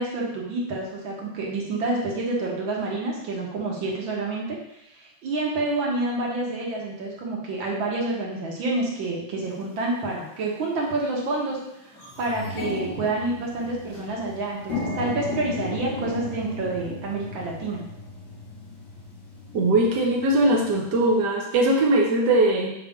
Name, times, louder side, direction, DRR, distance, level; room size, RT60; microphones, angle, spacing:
voice 1, 0.0-4.5 5.0-11.6 12.2-17.8, right 2 dB, 85° right, -2 dB, 2.2 m, -28 dB
sound 1, 9.6-9.7 10.5-10.7 11.1-11.2 11.5-21.2, left 3 dB, 65° left, 3.0 m, -36 dB
voice 2, 19.5-22.7, right 2 dB, 65° right, -1 dB, 1.5 m, -20 dB
6.5 x 5.3 x 3.7 m, 0.82 s
omnidirectional pair, 2.1 m